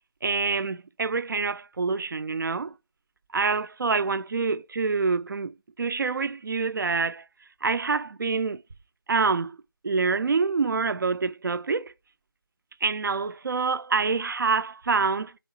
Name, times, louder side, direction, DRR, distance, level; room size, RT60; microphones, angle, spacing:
voice 1, 0.2-2.7 3.3-7.2 7.6-8.6 9.1-9.6 9.8-11.9 12.8-15.4, right 4 dB, 60° right, 0.4 m, -26 dB
4.8 x 2.9 x 2.8 m
figure-of-eight pair, 160°, 13 cm